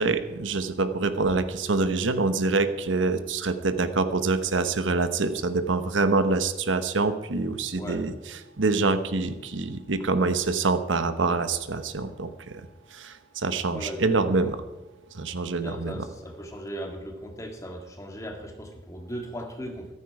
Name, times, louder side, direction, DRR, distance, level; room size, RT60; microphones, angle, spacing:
voice 1, 0.0-8.1 8.6-12.6 12.9-14.6 15.1-16.0, right 3 dB, 80° right, 10 dB, 1.0 m, -25 dB
voice 2, 7.7-8.1 10.0-10.1 13.7-14.5 15.6-19.9, equal, 15° left, 3 dB, 2.0 m, -38 dB
14.5 x 13.0 x 4.8 m, 1.1 s
head